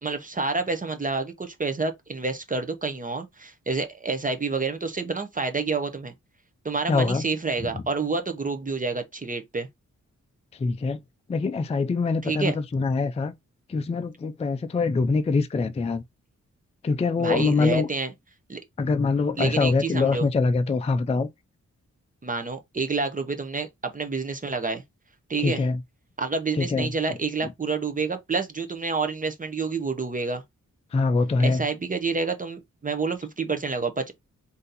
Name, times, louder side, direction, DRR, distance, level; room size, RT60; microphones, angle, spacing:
voice 1, 0.0-6.1 6.6-9.7 12.2-12.5 17.2-18.1 18.5-18.6 19.4-20.3 22.2-24.8 25.3-25.7 26.2-30.4 31.4-34.1, right 4 dB, 25° right, 0.6 m, -28 dB
voice 2, 6.9-7.2 10.6-11.0 11.3-13.3 13.7-16.0 16.8-17.9 18.8-21.3 25.4-25.8 26.6-26.9 30.9-31.6, left 4 dB, 20° left, 0.3 m, -24 dB
3.9 x 2.7 x 3.9 m
wide cardioid pair, 170°, 30 cm